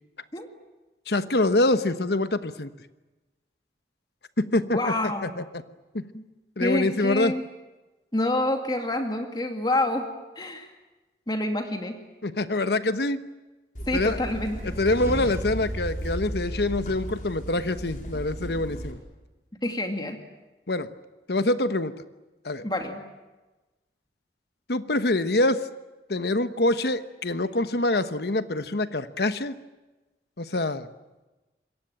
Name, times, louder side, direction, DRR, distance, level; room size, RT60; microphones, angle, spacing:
voice 1, 1.1-2.7 4.4-5.4 5.9-6.1 6.6-7.4 12.2-13.2 13.9-14.2 14.6-19.0 20.7-20.9 21.3-21.9 22.4-22.7 24.7-25.7 26.1-29.6 30.4-30.9, left 2 dB, 65° left, 11 dB, 1.2 m, -25 dB
voice 2, 4.7-5.3 6.1-6.2 6.6-7.4 8.1-10.1 10.4-10.7 11.3-12.0 13.8-14.8 19.6-20.2 22.6-23.0, left 1 dB, 25° left, 4 dB, 2.4 m, -27 dB
sound 1, 13.7-18.9, right 1 dB, 50° left, 5.0 m, -35 dB
sound 2, 14.5-17.5, equal, 15° right, 1.4 m, -37 dB
27.0 x 22.5 x 8.9 m, 1.1 s
head